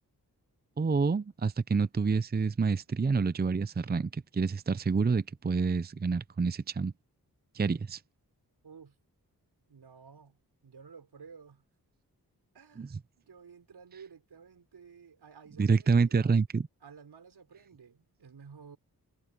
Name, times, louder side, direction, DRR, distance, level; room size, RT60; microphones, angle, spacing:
voice 1, 0.8-6.9 7.5-8.0 12.8-12.9 15.6-16.7, right 4 dB, 25° right, 0.6 m, -28 dB
voice 2, 8.6-9.0 9.7-11.6 12.5-16.2 16.8-18.8, right 6 dB, 80° right, 4.7 m, -53 dB
cardioid pair, 40°, 39 cm